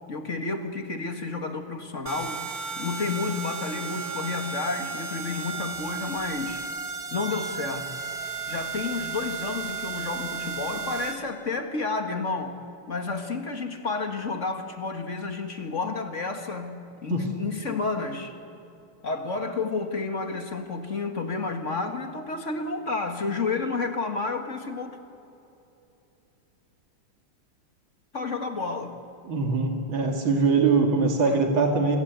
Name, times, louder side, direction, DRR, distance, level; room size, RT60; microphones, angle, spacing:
voice 1, 0.1-2.4 2.8-6.7 7.1-7.9 8.5-12.6 12.9-18.4 19.0-25.0 28.1-28.9 31.2-31.4, left 4 dB, 40° left, 5 dB, 2.0 m, -31 dB
sound 1, 2.1-11.1, right 5 dB, 50° right, 2.0 m, -34 dB
voice 2, 29.3-32.0, right 4 dB, 85° right, 2 dB, 3.1 m, -22 dB
29.0 x 24.0 x 8.2 m, 2.8 s
omnidirectional pair, 2.1 m